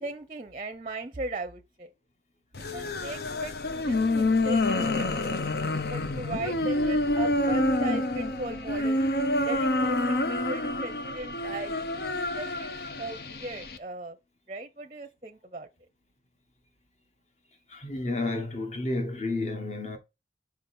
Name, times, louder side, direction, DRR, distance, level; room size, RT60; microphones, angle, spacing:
voice 1, 0.0-1.9 2.5-5.4 5.9-9.0 9.5-11.9 12.3-12.7 13.0-14.2 14.5-15.7, right 2 dB, 30° right, 0.6 m, -38 dB
sound 1, 2.5-13.8, left 2 dB, 60° left, 0.7 m, -28 dB
voice 2, 17.7-20.0, left 2 dB, 40° left, 1.2 m, -31 dB
5.3 x 4.4 x 4.3 m
head